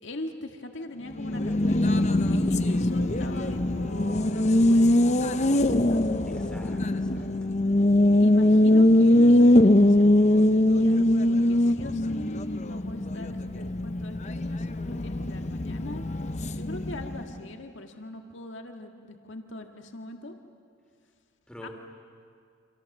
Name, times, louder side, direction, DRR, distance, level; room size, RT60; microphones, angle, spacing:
voice 1, 0.0-6.0 8.2-20.3 21.6-21.7, left 1 dB, 65° left, 4 dB, 1.9 m, -41 dB
Race car auto racing, 1.1-17.4, left 1 dB, 35° left, 0.7 m, -22 dB
sound 1, 2.1-7.2, right 1 dB, 80° right, 7.1 m, -48 dB
voice 2, 6.3-7.3 21.5-21.7, equal, 5° left, 2 dB, 3.1 m, -47 dB
29.5 x 27.0 x 7.3 m, 2.3 s
head